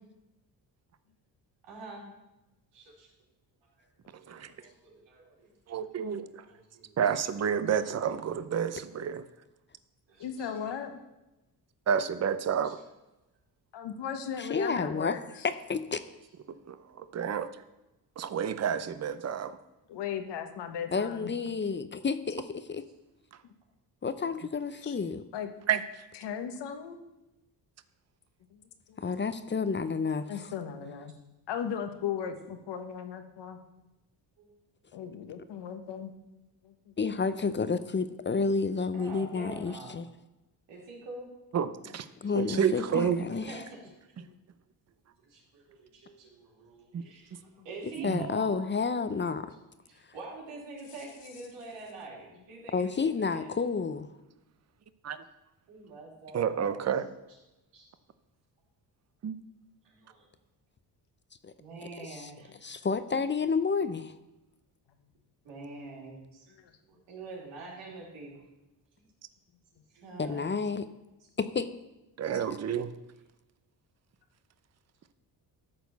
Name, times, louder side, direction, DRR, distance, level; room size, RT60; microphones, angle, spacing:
voice 1, 1.6-2.0 2.7-3.1 4.2-5.5 6.5-7.0 10.1-10.7 12.6-12.7 34.4-34.5 38.9-40.0 40.7-41.3 42.2-42.3 43.3-44.1 45.2-48.6 49.9-53.6 55.7-56.8 57.7-57.9 59.8-60.3 61.6-62.8 65.4-66.4 66.9-68.3 69.0-69.1 69.9-70.6, right 3 dB, 85° right, -3 dB, 3.2 m, -46 dB
voice 2, 5.7-6.4 7.0-9.2 11.9-12.8 16.7-17.5 18.2-19.6 25.7-25.8 41.5-42.1 42.3-43.3 46.9-47.0 48.0-48.3 55.0-55.2 56.3-57.1 59.2-59.4 72.2-72.9, right 8 dB, 40° right, 12 dB, 0.7 m, -30 dB
voice 3, 10.2-11.0 13.7-15.5 19.9-21.3 24.8-25.0 25.3-25.5 26.2-27.0 28.5-28.6 28.9-29.0 30.3-31.1 31.5-33.6 34.9-36.1 36.6-36.9 44.2-44.4 47.0-47.1 47.6-47.7 66.5-66.7, left 8 dB, 75° left, 7 dB, 1.3 m, -37 dB
voice 4, 14.4-15.2 15.4-16.0 20.9-22.8 24.0-25.2 29.0-30.5 37.0-40.1 42.2-43.6 48.0-49.5 52.7-54.1 61.4-61.5 62.0-62.3 62.6-64.1 70.2-70.9 71.4-71.7, left 5 dB, 25° left, 12 dB, 0.6 m, -30 dB
12.5 x 4.3 x 6.9 m, 0.98 s
cardioid pair, 85°, 42 cm